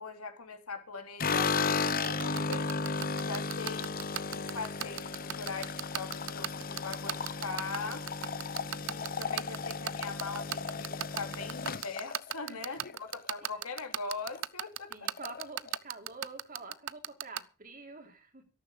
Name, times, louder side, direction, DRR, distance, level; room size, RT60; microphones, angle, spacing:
voice 1, 0.0-2.7 3.2-4.0 4.3-8.1 8.7-15.1, left 4 dB, 80° left, 3.2 m, -41 dB
sound 1, 1.2-13.5 13.8-14.4 14.7-14.8 15.1-15.8, left 4 dB, 40° left, 0.9 m, -35 dB
sound 2, 1.9-17.4, right 11 dB, 60° right, 0.6 m, -34 dB
voice 2, 12.4-12.8 14.9-18.4, right 3 dB, 40° right, 3.2 m, -48 dB
13.0 x 13.0 x 5.1 m
head